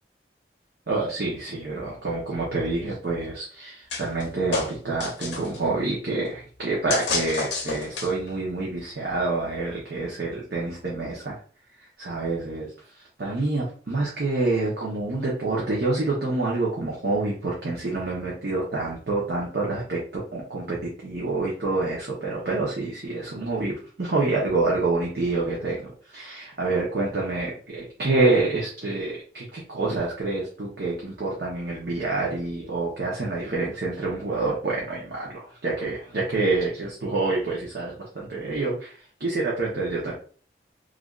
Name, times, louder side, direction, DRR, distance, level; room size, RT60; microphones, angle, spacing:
voice 1, 0.9-11.4 12.0-12.7 13.2-40.1, right 3 dB, 70° right, -4 dB, 0.8 m, -27 dB
sound 1, 3.9-4.2 4.5-5.6 6.9-8.3, left 4 dB, 85° left, 0.6 m, -29 dB
3.3 x 2.5 x 2.4 m, 0.42 s
head